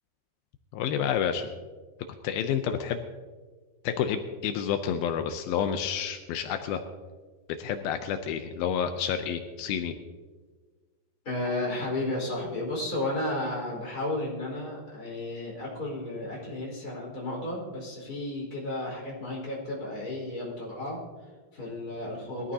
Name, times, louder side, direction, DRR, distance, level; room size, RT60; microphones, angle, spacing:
voice 1, 0.7-1.5 2.2-3.1 3.8-6.8 7.6-9.9, left 8 dB, 85° left, 7 dB, 2.5 m, -29 dB
voice 2, 11.2-22.5, left 1 dB, 25° left, -3 dB, 4.8 m, -33 dB
22.0 x 13.5 x 2.8 m, 1.4 s
omnidirectional pair, 4.2 m